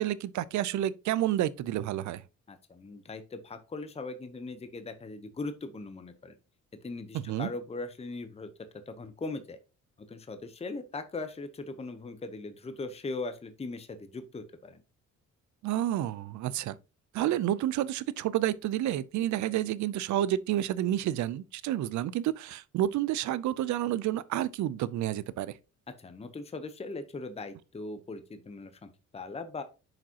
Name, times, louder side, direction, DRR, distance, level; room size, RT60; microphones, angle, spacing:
voice 1, 0.0-2.2 7.1-7.5 15.6-16.8 17.1-25.6, right 12 dB, 70° right, 0.5 m, -30 dB
voice 2, 2.5-6.4 6.8-8.5 8.9-9.6 10.0-14.8 26.0-29.6, left 3 dB, 20° left, 0.8 m, -39 dB
7.3 x 5.1 x 2.8 m
cardioid pair, 90°, 30 cm